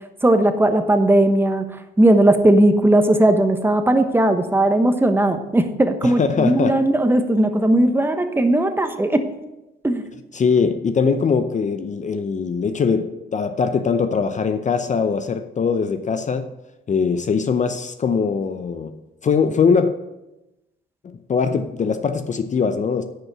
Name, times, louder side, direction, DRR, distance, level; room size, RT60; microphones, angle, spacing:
voice 1, 0.2-1.6 2.0-9.2 9.8-10.0, right 1 dB, 10° right, 7 dB, 1.1 m, -17 dB
voice 2, 6.0-6.8 10.3-16.5 16.9-19.0 19.2-20.0 21.0-23.0, left 5 dB, 40° left, 9 dB, 0.6 m, -21 dB
10.0 x 5.3 x 6.2 m, 0.96 s
cardioid pair, 90°, 20 cm